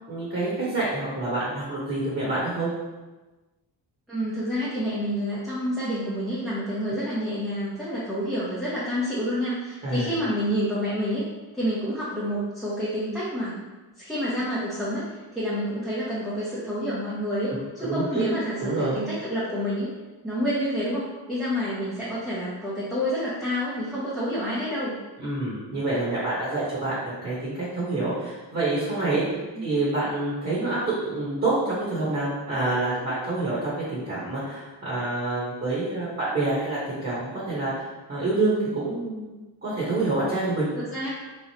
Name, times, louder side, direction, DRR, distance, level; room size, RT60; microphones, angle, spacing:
voice 1, 0.1-2.7 9.8-10.1 17.8-18.2 18.6-18.9 25.2-29.2 29.6-39.3 39.6-40.7, right 2 dB, 30° right, -8 dB, 1.0 m, -27 dB
voice 2, 4.1-11.2 11.5-13.6 14.0-19.9 20.2-24.9 40.8-41.1, equal, ahead, -10 dB, 0.6 m, -28 dB
3.7 x 3.2 x 2.8 m, 1.2 s
wide cardioid pair, 180°, 44 cm